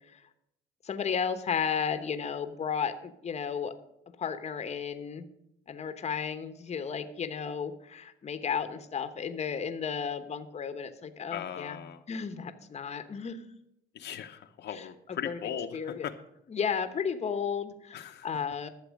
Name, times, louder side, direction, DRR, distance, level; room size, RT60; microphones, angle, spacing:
voice 1, 0.8-3.7 4.2-5.2 5.7-13.4 14.7-15.4 15.7-16.1 16.5-18.7, left 6 dB, 35° left, 9 dB, 1.0 m, -33 dB
voice 2, 11.3-12.0 13.9-16.1 17.9-18.3, left 9 dB, 60° left, 5 dB, 0.9 m, -38 dB
12.0 x 7.5 x 6.3 m, 0.80 s
cardioid pair, 120°, 20 cm